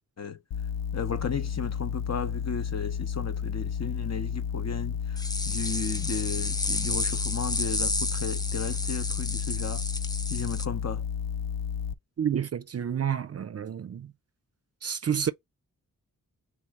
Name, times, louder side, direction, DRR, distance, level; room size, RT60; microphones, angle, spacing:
sound 1, 0.5-11.9, left 7 dB, 80° left, 0.5 m, -32 dB
voice 1, 0.9-5.0 5.4-9.8 10.3-11.0, left 6 dB, 45° left, 0.9 m, -34 dB
sound 2, 5.2-10.7, left 2 dB, 10° left, 0.5 m, -32 dB
voice 2, 12.2-14.1 14.8-15.3, right 8 dB, 45° right, 0.4 m, -29 dB
3.5 x 3.1 x 4.8 m
cardioid pair, 50°, 36 cm